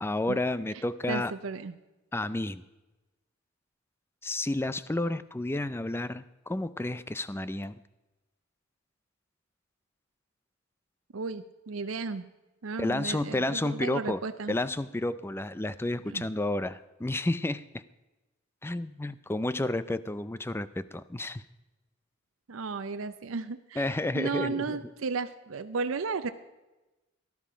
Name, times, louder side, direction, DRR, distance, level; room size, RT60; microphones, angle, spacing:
voice 1, 0.0-1.3 2.1-2.6 4.2-7.8 12.8-14.2 14.5-17.8 18.6-21.4 23.8-24.8, left 2 dB, 10° left, 15 dB, 0.5 m, -31 dB
voice 2, 1.1-1.7 11.1-12.3 12.6-14.6 16.1-16.3 22.5-23.9 24.1-26.3, right 4 dB, 85° right, 10 dB, 0.6 m, -34 dB
18.0 x 12.0 x 5.0 m, 1.1 s
head